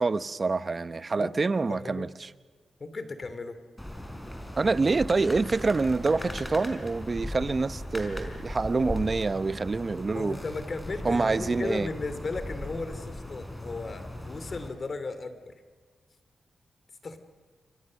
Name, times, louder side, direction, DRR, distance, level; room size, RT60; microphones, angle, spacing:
voice 1, 0.0-2.3 4.6-10.4 11.0-11.9, right 3 dB, 40° right, 15 dB, 0.9 m, -26 dB
voice 2, 1.2-2.1 2.8-3.6 10.1-15.5 17.0-17.2, left 3 dB, 50° left, 10 dB, 2.7 m, -36 dB
sound 1, 3.8-14.7, left 1 dB, 10° left, 4.7 m, -38 dB
Piano, 6.2-12.5, left 4 dB, 85° left, 6.9 m, -56 dB
29.0 x 24.0 x 6.5 m, 1.5 s
cardioid pair, 70°, 0 cm